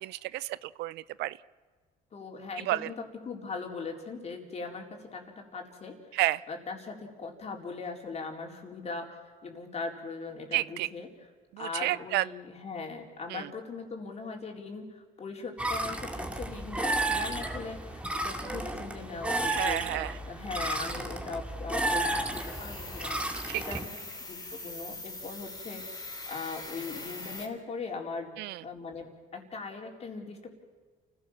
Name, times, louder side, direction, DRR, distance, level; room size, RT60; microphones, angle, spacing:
voice 1, 0.0-1.4 2.7-2.9 6.1-6.4 10.5-10.9 11.5-12.2 13.3-13.5 19.5-20.1 23.5-23.6 28.4-28.6, right 17 dB, 80° right, 19 dB, 0.6 m, -31 dB
voice 2, 2.1-2.9 3.3-6.2 6.5-11.1 11.6-28.3 28.6-30.5, left 4 dB, 40° left, 2 dB, 4.2 m, -40 dB
sound 1, 15.6-23.8, right 2 dB, 5° right, 2.3 m, -32 dB
sound 2, 22.3-27.5, left 2 dB, 20° left, 4.0 m, -42 dB
29.0 x 16.5 x 7.3 m, 1.5 s
cardioid pair, 110°, 17 cm